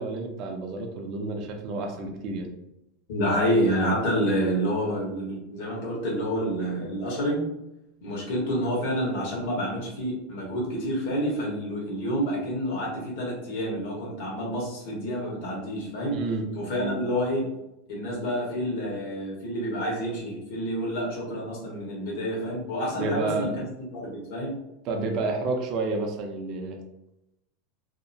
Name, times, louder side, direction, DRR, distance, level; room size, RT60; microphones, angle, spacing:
voice 1, 0.0-2.5 16.1-16.5 16.8-17.0 22.9-23.5 24.9-26.8, right 3 dB, 45° right, 3 dB, 0.5 m, -30 dB
voice 2, 3.1-7.5 8.0-16.2 16.5-17.5 17.9-23.6 23.9-24.6, equal, 65° left, -4 dB, 1.2 m, -28 dB
2.8 x 2.0 x 2.6 m, 0.89 s
supercardioid pair, 140°, 0 cm